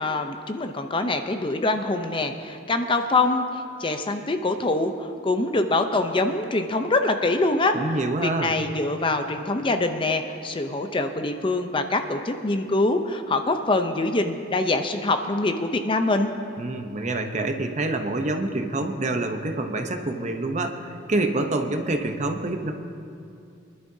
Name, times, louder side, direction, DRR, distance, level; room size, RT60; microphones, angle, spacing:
voice 1, 0.0-3.5 3.8-7.8 8.2-16.3, left 2 dB, 25° left, 7 dB, 0.6 m, -24 dB
voice 2, 7.7-8.6 16.6-22.7, right 2 dB, 40° right, 5 dB, 0.7 m, -27 dB
24.0 x 11.0 x 2.7 m, 2.5 s
head